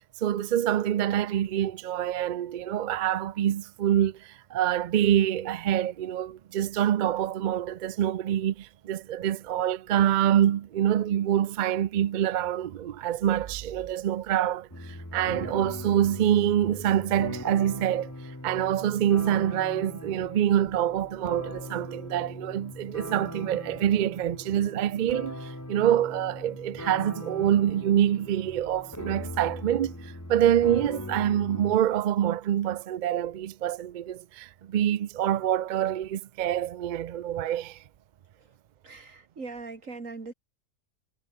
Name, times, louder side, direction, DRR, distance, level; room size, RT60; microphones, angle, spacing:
voice 1, 0.2-18.1 18.4-37.8, right 10 dB, 60° right, 0.5 m, -26 dB
sound 1, 14.7-31.8, left 1 dB, 15° left, 2.4 m, -40 dB
voice 2, 38.8-40.3, right 3 dB, 80° right, 3.3 m, -40 dB
omnidirectional pair, 1.3 m